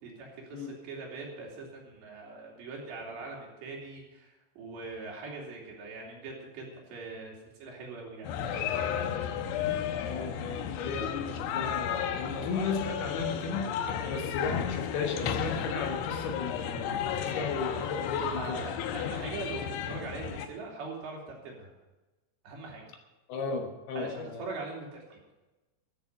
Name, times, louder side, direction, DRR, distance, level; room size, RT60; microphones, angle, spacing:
voice 1, 0.0-9.2 14.0-14.3 17.9-21.7 22.4-22.8 23.9-25.2, right 3 dB, 70° right, -2 dB, 5.0 m, -42 dB
sound 1, 8.2-20.5, left 8 dB, 90° left, 3.4 m, -33 dB
voice 2, 10.0-18.7 23.3-24.4, left 4 dB, 70° left, 3 dB, 3.0 m, -35 dB
13.5 x 7.0 x 8.9 m, 1.1 s
omnidirectional pair, 5.2 m